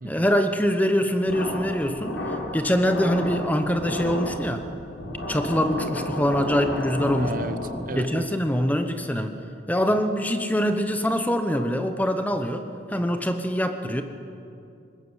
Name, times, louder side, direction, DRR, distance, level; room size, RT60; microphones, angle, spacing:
voice 1, 0.0-4.7 5.3-7.4 8.0-9.4 9.7-14.0, equal, 10° left, 7 dB, 1.0 m, -24 dB
sound 1, 1.2-8.1, left 1 dB, 90° left, 5.4 m, -32 dB
voice 2, 7.2-8.3, right 2 dB, 45° right, 10 dB, 1.0 m, -33 dB
21.5 x 20.0 x 8.2 m, 2.6 s
head